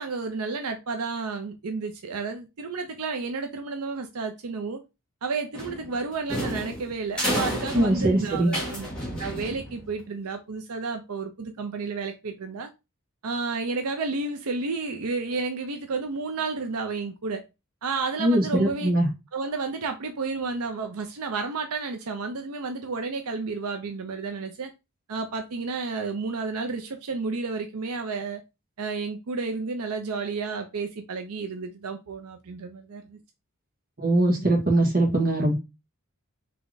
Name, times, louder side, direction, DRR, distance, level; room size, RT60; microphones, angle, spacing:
voice 1, 0.0-4.8 5.2-8.9 9.2-12.7 13.2-17.4 17.8-18.9 19.3-24.7 25.1-28.4 28.8-33.2, right 4 dB, 90° right, 0.6 m, -31 dB
sound 1, 5.5-10.0, equal, 5° left, 1.5 m, -31 dB
voice 2, 7.7-8.5 18.2-19.1 34.0-35.5, right 1 dB, 45° right, 1.7 m, -21 dB
3.4 x 3.3 x 3.9 m
head